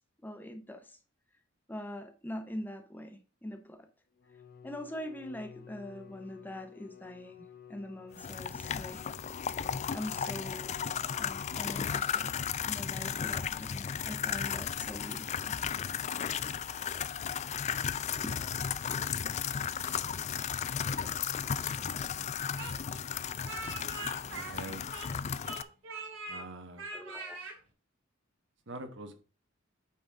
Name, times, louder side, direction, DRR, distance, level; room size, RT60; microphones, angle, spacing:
voice 1, 0.2-1.0 1.7-3.9 4.6-9.0 9.9-10.7 11.2-12.4 12.7-15.6 18.2-18.4 26.9-27.4, left 1 dB, 10° left, 0.7 m, -43 dB
Bowed string instrument, 4.2-12.5, left 8 dB, 50° left, 0.8 m, -53 dB
sound 1, 8.2-25.6, left 8 dB, 35° left, 0.3 m, -35 dB
Speech, 22.6-25.2 25.4-26.4 26.8-27.6, right 3 dB, 80° right, 2.4 m, -42 dB
voice 2, 24.3-24.9 26.3-26.8 28.7-29.1, right 2 dB, 65° right, 1.2 m, -44 dB
8.9 x 3.9 x 4.7 m
head